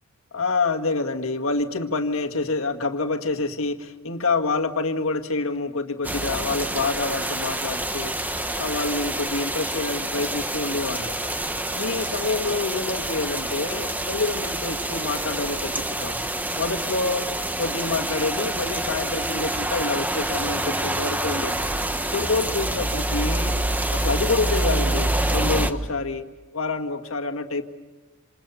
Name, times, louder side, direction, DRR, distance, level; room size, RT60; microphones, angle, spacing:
voice 1, 0.3-8.1 8.6-11.1 11.7-16.2 16.6-17.3 17.6-21.6 22.1-23.6 23.9-26.3 26.5-27.6, left 3 dB, 70° left, 5 dB, 1.9 m, -27 dB
sound 1, 6.0-25.7, right 1 dB, 10° right, 1.2 m, -27 dB
27.5 x 27.5 x 7.0 m, 1.2 s
head